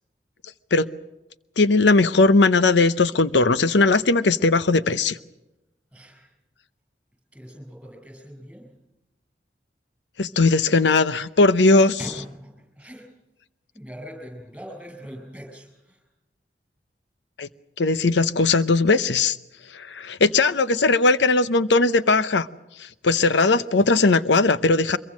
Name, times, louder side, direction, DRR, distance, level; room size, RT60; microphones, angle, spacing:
voice 1, 1.6-5.2 10.2-12.0 17.4-17.5 17.8-19.4 19.7-22.5 22.8-25.0, left 3 dB, 85° left, 14 dB, 0.8 m, -19 dB
voice 2, 5.9-6.3 7.3-8.7 12.0-13.1 13.7-16.0, equal, 5° right, 2 dB, 7.4 m, -41 dB
24.5 x 22.5 x 6.3 m, 0.96 s
head